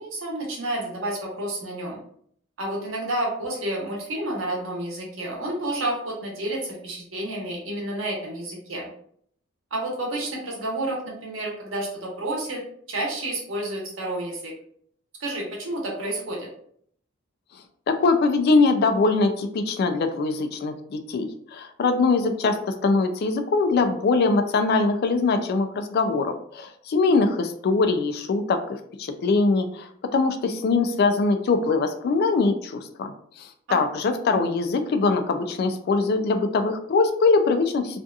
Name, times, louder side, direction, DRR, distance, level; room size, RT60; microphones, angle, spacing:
voice 1, 0.0-2.0 2.6-8.9 9.7-12.6 12.9-14.5 15.2-16.5 33.7-33.8, right 1 dB, 75° right, -2 dB, 0.9 m, -30 dB
voice 2, 17.9-28.6 29.0-38.0, left 3 dB, 50° left, 7 dB, 0.3 m, -22 dB
2.6 x 2.4 x 2.3 m, 0.64 s
head